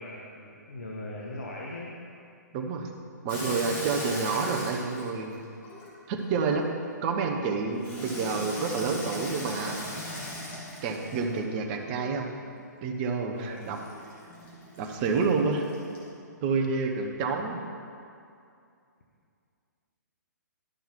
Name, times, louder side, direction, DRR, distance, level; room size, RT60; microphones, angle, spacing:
voice 1, 0.0-1.9 13.3-13.7, left 1 dB, 60° left, -3 dB, 1.2 m, -39 dB
voice 2, 2.5-2.9 3.2-5.4 6.1-6.7 7.0-9.9 10.8-12.3 12.8-13.8 14.8-15.7 16.4-17.6, right 4 dB, 30° right, 3 dB, 0.9 m, -29 dB
Water tap faucet / Sink (filling or washing), 3.3-6.3 7.8-11.5 13.6-16.1, left 1 dB, 20° left, 1.9 m, -39 dB
11.5 x 5.8 x 4.3 m, 2.5 s
figure-of-eight pair, 125°, 10 cm